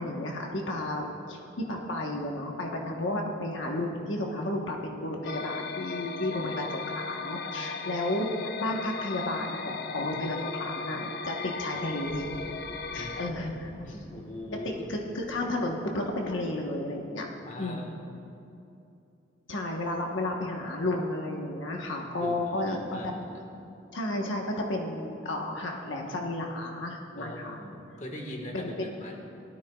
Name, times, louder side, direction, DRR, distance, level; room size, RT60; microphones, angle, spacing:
voice 1, 0.0-1.4 1.7-12.3 12.9-14.0 14.5-17.3 17.6-17.9 19.5-23.1 23.9-24.4 24.7-27.6 28.5-28.9, left 1 dB, 85° left, 1 dB, 1.1 m, -32 dB
sound 1, 5.2-13.3, left 4 dB, 55° left, 0.5 m, -37 dB
sound 2, 12.0-16.8, equal, 20° left, 1.0 m, -51 dB
voice 2, 12.9-13.3 13.7-14.9 17.4-18.0 22.2-23.5 27.1-29.2, left 1 dB, 40° left, 1 dB, 1.5 m, -41 dB
18.0 x 13.0 x 2.3 m, 2.8 s
head